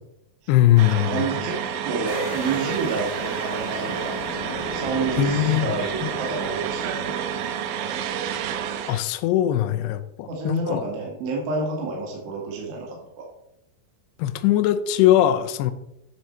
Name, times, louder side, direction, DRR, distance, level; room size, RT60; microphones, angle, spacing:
voice 1, 0.5-1.3 5.2-5.7 6.0-6.1 8.9-10.8 14.2-15.7, left 12 dB, 85° left, 10 dB, 2.4 m, -20 dB
sound 1, 0.8-9.0, right 8 dB, 85° right, 3.1 m, -29 dB
voice 2, 1.0-1.6 1.8-4.2 4.7-7.2 10.3-13.3, right 3 dB, 70° right, -2 dB, 3.7 m, -29 dB
sound 2, 2.1-7.1, left 5 dB, 65° left, 2.3 m, -37 dB
10.0 x 5.8 x 4.3 m, 0.83 s
omnidirectional pair, 5.3 m